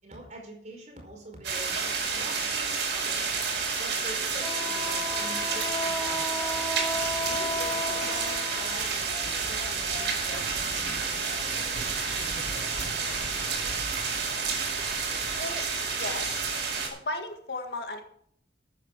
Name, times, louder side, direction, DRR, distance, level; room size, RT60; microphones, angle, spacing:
voice 1, 0.0-3.4 3.8-6.6 7.2-13.2, right 1 dB, 40° right, 1 dB, 4.9 m, -45 dB
sound 1, 1.4-16.9, right 5 dB, 90° right, 4.7 m, -30 dB
Wind instrument woodwind instrument, 4.4-8.9, left 2 dB, ahead, 2.2 m, -33 dB
sound 2, 5.4-11.4, left 3 dB, 30° left, 4.3 m, -47 dB
voice 2, 15.9-16.5 16.9-18.0, left 2 dB, 65° left, 5 dB, 1.8 m, -35 dB
14.0 x 9.4 x 4.8 m, 0.67 s
head